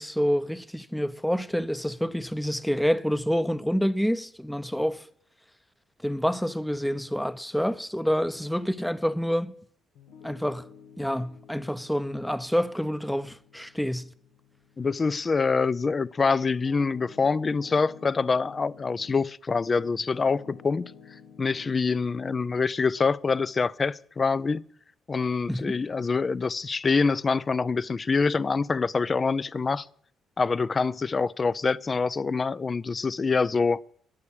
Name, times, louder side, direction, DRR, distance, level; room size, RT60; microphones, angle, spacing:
voice 1, 0.0-5.0 6.0-9.5 10.2-10.7 11.0-14.1 25.5-25.7, equal, 5° left, 0.8 m, -27 dB
Piano, 9.9-19.3 19.7-21.7, left 7 dB, 90° left, 1.3 m, -51 dB
voice 2, 14.8-20.9 21.4-24.6 25.1-29.9 30.4-33.8, left 4 dB, 35° left, 0.5 m, -25 dB
11.5 x 8.4 x 8.7 m
supercardioid pair, 60°, 0 cm